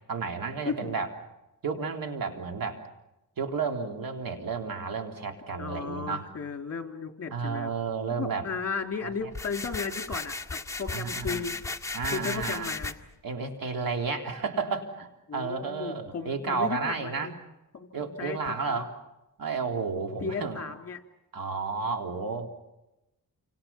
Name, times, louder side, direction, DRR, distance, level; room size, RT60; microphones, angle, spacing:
voice 1, 0.1-1.1 1.6-2.8 3.4-6.3 7.3-8.5 9.0-9.3 10.9-11.5 11.9-12.7 13.2-17.3 17.9-18.9 19.4-20.6 21.3-22.5, right 5 dB, 70° right, 4 dB, 3.6 m, -32 dB
voice 2, 0.6-1.0 5.6-7.7 8.2-11.5 12.1-13.0 15.3-17.4 17.7-18.8 20.2-21.0, left 5 dB, 40° left, 4 dB, 3.1 m, -35 dB
sound 1, 9.3-12.9, left 3 dB, 10° left, 1.8 m, -35 dB
29.0 x 26.5 x 5.8 m, 0.95 s
cardioid pair, 90°, 36 cm